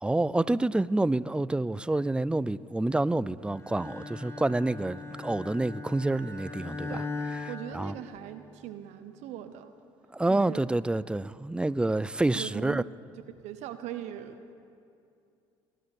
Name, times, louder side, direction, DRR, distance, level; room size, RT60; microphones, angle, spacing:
voice 1, 0.0-6.9 7.7-7.9 10.1-12.8, right 2 dB, 10° right, 0.4 m, -28 dB
Bowed string instrument, 3.6-8.6, left 3 dB, 20° left, 2.1 m, -39 dB
voice 2, 7.5-9.7 10.3-10.6 12.3-12.9 13.4-14.5, right 11 dB, 70° right, 0.8 m, -40 dB
19.5 x 11.0 x 6.5 m
supercardioid pair, 70°, 12 cm